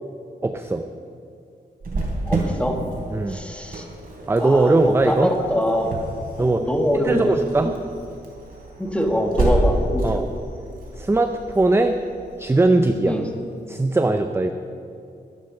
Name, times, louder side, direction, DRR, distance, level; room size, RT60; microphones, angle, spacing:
voice 1, 0.4-0.8 3.1-3.4 4.3-5.3 6.4-6.7 7.0-7.7 10.0-10.2 11.0-12.0 12.4-13.2 13.7-14.5, right 2 dB, 15° right, 6 dB, 0.5 m, -19 dB
Cricket, 1.8-13.3, right 2 dB, 55° right, 3.4 m, -29 dB
voice 2, 2.3-2.8 3.3-3.8 4.4-5.9 6.4-7.3 7.6-7.7 8.8-10.2 13.0-13.3, equal, 5° left, 3 dB, 1.5 m, -23 dB
12.5 x 11.0 x 6.7 m, 2.5 s
wide cardioid pair, 145°, 18 cm